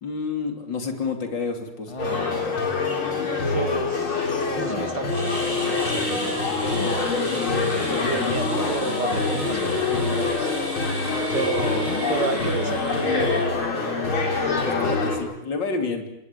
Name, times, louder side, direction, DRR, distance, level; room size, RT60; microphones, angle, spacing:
voice 1, 0.0-1.9 14.6-16.0, left 4 dB, 60° left, 5 dB, 3.7 m, -29 dB
sound 1, 1.9-2.5 4.6-5.0 6.7-7.0 9.3-9.8 11.6-12.1, left 3 dB, 20° left, 1.0 m, -36 dB
sound 2, 2.0-15.2, left 3 dB, 75° left, 4.8 m, -25 dB
voice 2, 3.5-6.8 8.0-10.5 11.3-13.5, right 6 dB, 55° right, 9 dB, 2.4 m, -32 dB
sound 3, 5.1-13.4, equal, 20° right, 8.1 m, -36 dB
27.5 x 20.5 x 8.7 m, 0.82 s
omnidirectional pair, 2.3 m